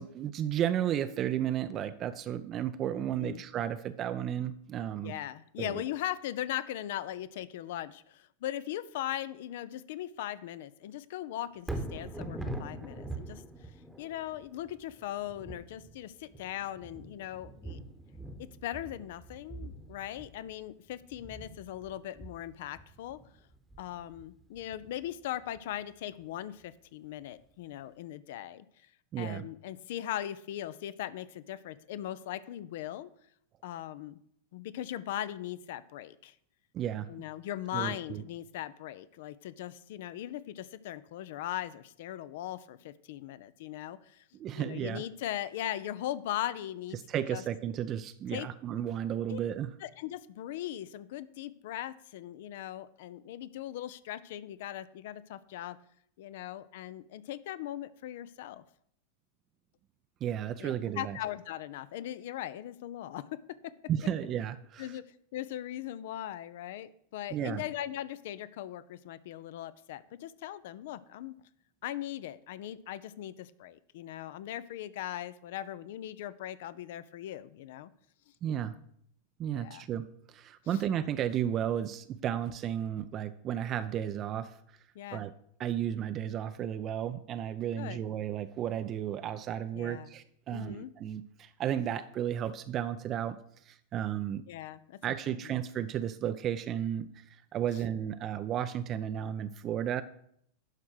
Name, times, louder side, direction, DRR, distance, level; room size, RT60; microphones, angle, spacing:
voice 1, 0.0-5.1 5.6-5.8 29.1-29.4 36.7-37.1 37.7-38.2 44.3-45.0 46.9-49.7 60.2-61.2 63.9-65.0 67.3-67.6 78.4-78.8 79.4-84.5 85.1-85.3 85.6-93.4 93.6-94.4 95.0-100.0, right 10 dB, 30° right, 11 dB, 0.5 m, -33 dB
voice 2, 2.9-3.4 5.0-13.4 14.0-17.8 18.4-23.2 23.8-28.6 29.2-33.1 33.6-34.2 34.5-36.3 37.1-44.2 44.5-47.0 47.3-47.4 48.3-48.5 49.3-49.4 49.8-55.8 56.2-58.6 60.6-63.7 64.8-65.1 65.3-71.3 71.8-77.9 79.6-79.9 80.7-80.8 84.9-85.2 87.7-88.0 89.7-90.1 90.5-90.9 94.5-95.5, left 12 dB, 55° left, 17 dB, 0.5 m, -39 dB
Thunder, 11.6-25.8 26.2-26.3, right 2 dB, 5° right, 1.0 m, -44 dB
11.5 x 4.6 x 6.4 m, 0.69 s
figure-of-eight pair, 90°, 0 cm